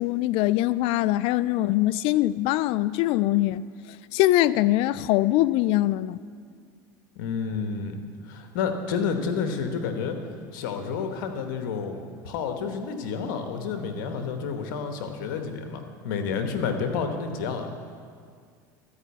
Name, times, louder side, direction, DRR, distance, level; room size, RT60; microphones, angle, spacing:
voice 1, 0.0-3.6 4.1-6.2, left 15 dB, 60° left, 0.3 m, -22 dB
voice 2, 7.1-10.2 10.5-17.7, left 5 dB, 75° left, 1.2 m, -30 dB
13.0 x 5.1 x 8.3 m
hypercardioid pair, 95°, 11 cm